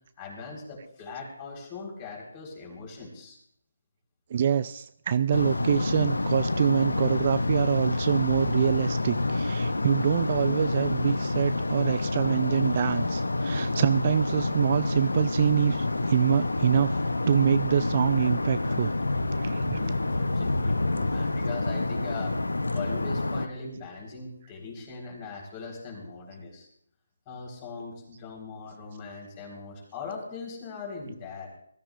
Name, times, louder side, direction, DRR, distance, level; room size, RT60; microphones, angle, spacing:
voice 1, 0.2-3.4 19.7-22.4 22.7-26.7 27.3-31.5, left 4 dB, 25° left, 0 dB, 4.1 m, -40 dB
voice 2, 4.3-16.9 17.3-18.9 19.4-20.0, right 8 dB, 40° right, 13 dB, 0.4 m, -25 dB
sound 1, 5.3-23.5, left 2 dB, 85° left, 0.8 m, -28 dB
21.0 x 13.5 x 2.5 m, 0.69 s
figure-of-eight pair, 155°, 0 cm